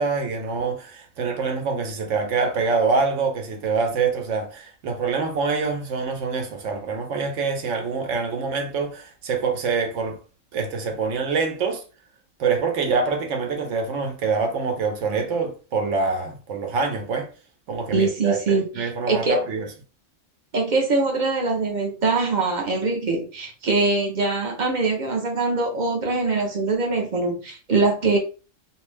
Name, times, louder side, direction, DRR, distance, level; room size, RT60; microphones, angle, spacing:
voice 1, 0.0-10.2 10.5-11.8 12.4-17.3 17.7-19.7, right 4 dB, 75° right, 0.9 m, -25 dB
voice 2, 17.9-19.4 20.5-28.2, right 3 dB, 45° right, 0.6 m, -23 dB
2.6 x 2.0 x 3.1 m
omnidirectional pair, 1.3 m